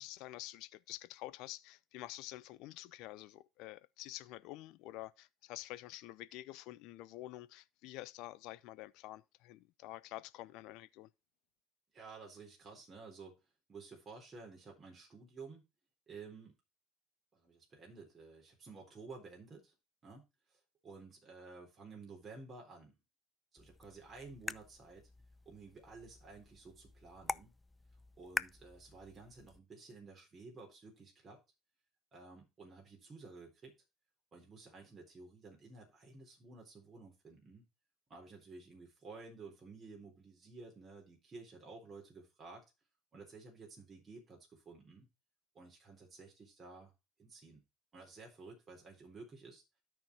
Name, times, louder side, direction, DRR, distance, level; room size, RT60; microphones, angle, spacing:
voice 1, 0.0-11.1, left 16 dB, 65° left, 0.5 m, -48 dB
voice 2, 11.9-13.3 13.7-15.6 16.1-16.5 17.3-19.7 20.0-23.0 23.5-25.1 25.5-27.5 28.2-31.4 32.1-33.7 34.3-37.7 38.1-42.6 43.1-45.1 45.5-46.9 47.2-47.6 47.9-49.6, right 4 dB, 35° right, 3.9 m, -53 dB
sound 1, 23.6-29.6, left 3 dB, 15° left, 0.4 m, -46 dB
12.5 x 4.5 x 4.4 m
hypercardioid pair, 65°, 0 cm